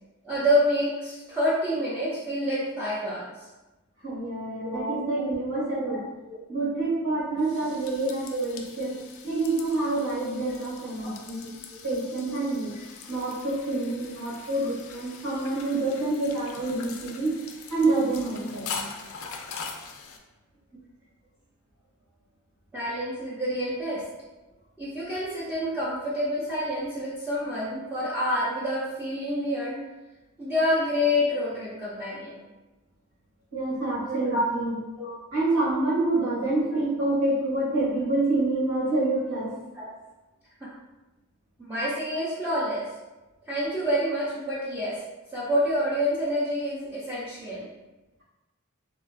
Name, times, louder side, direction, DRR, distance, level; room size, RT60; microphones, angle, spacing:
voice 1, 0.2-3.3 4.6-5.3 5.7-6.0 6.3-6.4 8.3-8.4 14.6-14.7 22.7-24.0 24.8-29.8 30.4-32.4 34.0-34.4 34.7-35.1 36.7-36.8 39.8-39.9 40.6-40.7 41.6-42.8 43.5-45.0 45.3-47.7, equal, 10° right, -9 dB, 0.4 m, -28 dB
voice 2, 4.0-6.0 6.5-9.0 9.2-11.5 11.8-12.8 13.1-17.3 17.7-18.9 33.5-34.8 35.3-39.5, right 2 dB, 85° right, -8 dB, 1.4 m, -27 dB
sound 1, 7.2-20.2, left 5 dB, 65° left, 0.3 m, -42 dB
2.8 x 2.3 x 2.4 m, 1.1 s
head